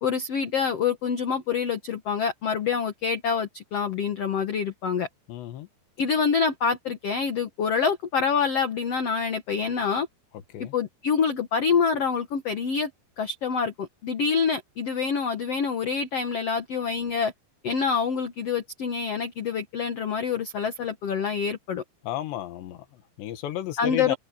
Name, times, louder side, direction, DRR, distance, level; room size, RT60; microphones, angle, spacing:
voice 1, 0.0-5.1 6.0-10.1 10.6-12.9 13.2-17.3 17.6-21.8 23.8-24.1, left 6 dB, 65° left, 1.5 m, -26 dB
voice 2, 5.3-5.7 10.5-10.7 22.0-24.2, left 12 dB, 90° left, 3.7 m, -33 dB
omnidirectional pair, 4.9 m